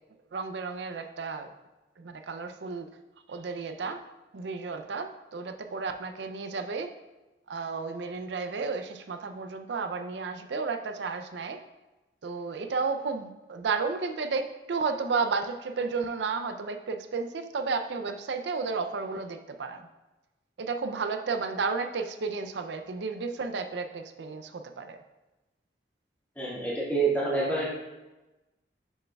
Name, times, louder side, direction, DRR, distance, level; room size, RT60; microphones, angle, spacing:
voice 1, 0.3-1.5 2.0-2.9 3.3-4.0 4.3-6.9 7.5-11.6 12.2-19.9 20.6-25.0, right 4 dB, 80° right, 7 dB, 0.5 m, -32 dB
voice 2, 26.4-27.7, right 3 dB, 10° left, -8 dB, 2.0 m, -27 dB
6.5 x 6.3 x 2.3 m, 1.1 s
head